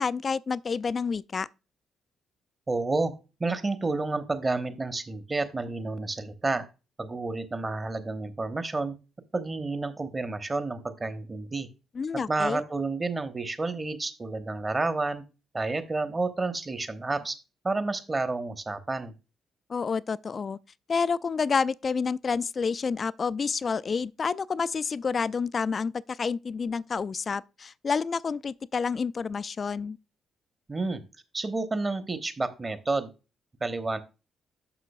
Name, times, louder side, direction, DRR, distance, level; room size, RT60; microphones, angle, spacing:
voice 1, 0.0-1.5 12.0-12.6 19.7-20.6 20.9-30.0, left 5 dB, 40° left, 0.3 m, -29 dB
voice 2, 2.7-3.1 3.4-6.6 7.0-8.9 9.3-11.7 12.1-15.2 15.5-17.4 17.6-19.1 30.7-31.0 31.3-33.1 33.6-34.0, right 3 dB, 25° right, 1.1 m, -30 dB
11.0 x 6.5 x 2.3 m
figure-of-eight pair, 40°, 0 cm